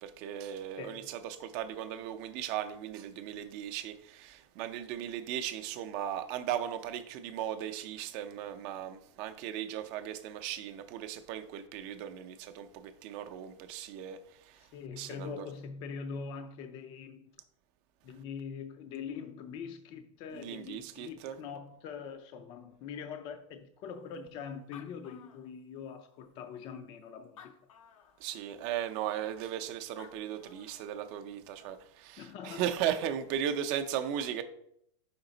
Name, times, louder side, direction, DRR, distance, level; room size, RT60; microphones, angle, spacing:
voice 1, 0.0-14.7 15.0-15.5 20.3-21.3 28.2-34.4, right 10 dB, 45° right, 0.5 m, -37 dB
voice 2, 0.8-1.1 14.6-17.3 18.0-27.6 32.2-32.7, left 6 dB, 35° left, 0.4 m, -43 dB
Animal, 24.3-24.4 24.5-26.0 26.6-26.7 27.2-28.2 29.7-29.8 30.0-30.9, left 8 dB, 90° left, 0.7 m, -55 dB
5.1 x 4.8 x 3.9 m
supercardioid pair, 140°, 16 cm